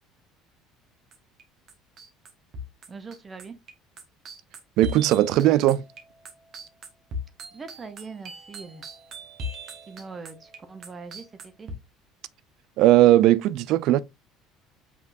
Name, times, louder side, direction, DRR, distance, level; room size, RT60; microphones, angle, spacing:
sound 1, 1.1-1.4 1.7-11.7, left 2 dB, 50° right, 1.3 m, -40 dB
voice 1, 2.9-3.6 7.5-8.8 9.9-11.7, right 4 dB, 25° right, 0.7 m, -42 dB
voice 2, 4.8-5.8 12.8-14.0, right 14 dB, 65° right, 0.4 m, -18 dB
5.9 x 3.6 x 2.5 m
cardioid pair, 115°, 0 cm